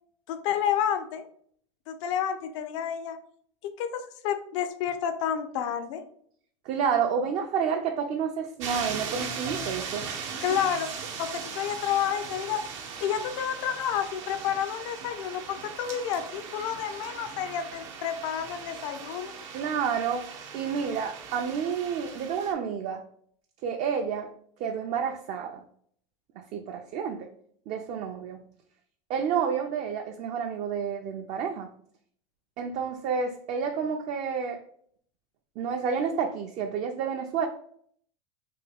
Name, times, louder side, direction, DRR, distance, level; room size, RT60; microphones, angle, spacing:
voice 1, 0.3-1.2 1.9-3.2 3.6-6.0 10.4-10.9 11.2-12.6 13.0-19.3, left 9 dB, 75° left, 8 dB, 0.4 m, -30 dB
voice 2, 6.7-10.1 19.5-20.3 20.5-23.0 23.6-24.3 24.6-25.6 26.4-27.3 27.7-28.4 29.1-31.7 32.6-34.6 35.6-37.5, right 6 dB, 45° right, 4 dB, 0.4 m, -29 dB
sound 1, 8.6-22.5, right 6 dB, 80° right, 0.8 m, -39 dB
3.4 x 2.2 x 3.3 m, 0.62 s
supercardioid pair, 115°, 16 cm